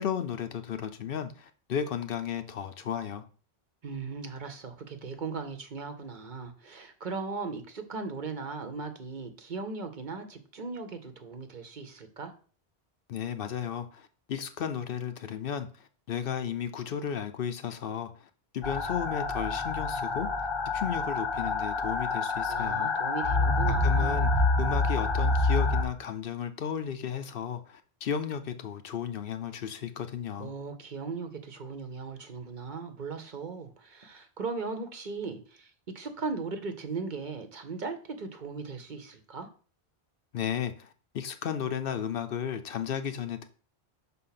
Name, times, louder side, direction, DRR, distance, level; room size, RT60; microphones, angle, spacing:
voice 1, 0.0-3.2 13.1-18.3 18.5-20.3 20.7-22.9 23.8-24.3 24.6-30.5 40.3-40.9 41.1-43.5, left 8 dB, 65° left, 0.8 m, -34 dB
voice 2, 3.8-12.3 22.5-24.3 30.4-39.5, right 4 dB, 50° right, 0.9 m, -38 dB
sound 1, 18.6-25.8, left 3 dB, 30° left, 0.7 m, -27 dB
5.8 x 3.9 x 5.7 m
omnidirectional pair, 1.0 m